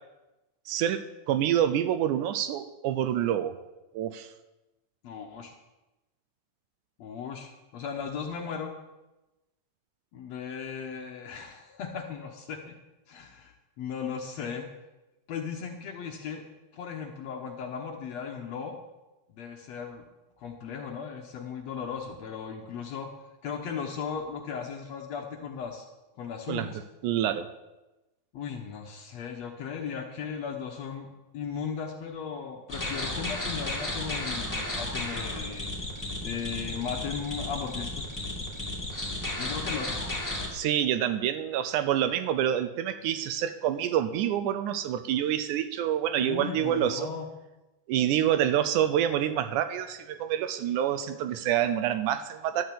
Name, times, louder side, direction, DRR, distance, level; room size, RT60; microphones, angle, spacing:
voice 1, 0.7-3.6 3.9-4.3 26.5-26.7 27.0-27.5 40.5-47.1 47.9-52.6, right 10 dB, 80° right, 11 dB, 1.9 m, -27 dB
voice 2, 5.0-5.5 7.0-8.7 10.1-12.8 13.1-14.7 15.3-16.4 16.7-18.8 19.3-20.0 20.4-23.1 23.4-25.9 26.2-26.8 28.3-35.9 36.2-38.1 39.4-40.0 46.2-47.3, left 6 dB, 65° left, 3 dB, 1.8 m, -37 dB
sound 1, 32.7-40.5, left 1 dB, 5° left, 1.9 m, -33 dB
12.0 x 6.4 x 8.5 m, 1.0 s
omnidirectional pair, 3.9 m